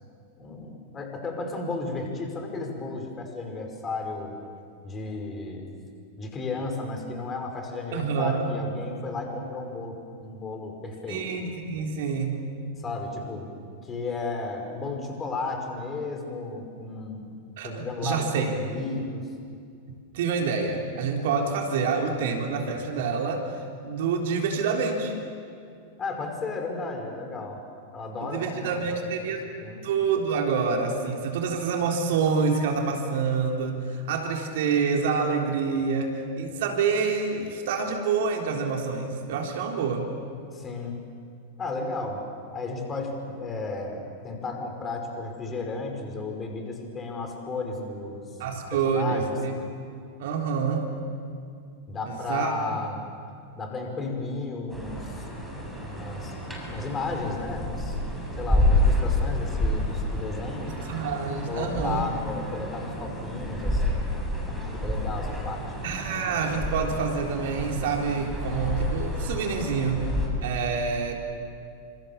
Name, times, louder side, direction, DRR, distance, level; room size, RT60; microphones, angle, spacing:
voice 1, 0.4-4.4 4.8-5.7 6.2-11.2 12.8-13.5 13.8-17.3 17.6-19.3 26.0-27.6 27.9-29.4 29.6-29.8 40.5-41.0 41.6-42.2 42.5-49.3 51.9-53.0 53.5-55.3 55.5-56.3 56.7-58.0 58.4-60.7 61.5-64.1 64.5-65.6, left 3 dB, 20° left, 3 dB, 5.6 m, -34 dB
voice 2, 7.9-8.5 11.1-12.5 17.6-18.5 20.1-23.5 23.8-25.1 28.2-29.4 29.8-40.1 48.4-49.5 50.2-50.9 52.1-52.5 60.9-62.0 65.8-70.1 70.4-71.2, right 5 dB, 55° right, 2 dB, 3.8 m, -27 dB
sound 1, 54.7-70.3, left 1 dB, 5° right, 7.7 m, -29 dB
29.5 x 27.0 x 7.3 m, 2.3 s
figure-of-eight pair, 90°, 0 cm